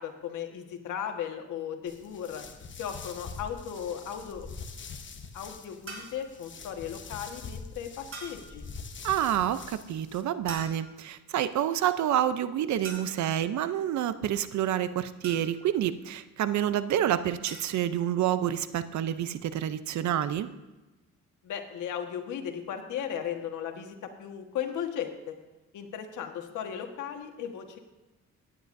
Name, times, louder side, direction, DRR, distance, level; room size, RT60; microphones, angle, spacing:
voice 1, 0.0-2.4 2.8-4.5 5.3-8.6 21.4-25.3 25.7-27.8, left 8 dB, 80° left, 4 dB, 1.6 m, -36 dB
sound 1, 1.9-10.2, left 5 dB, 40° left, 1.1 m, -44 dB
sound 2, 5.9-6.2 8.1-8.5 10.5-11.1 12.8-13.4 15.2-15.8 17.5-17.8, right 3 dB, 45° right, 4.5 m, -43 dB
voice 2, 9.0-20.5, right 11 dB, 70° right, 13 dB, 0.7 m, -28 dB
17.0 x 10.5 x 2.7 m, 1.1 s
cardioid pair, 90°, 30 cm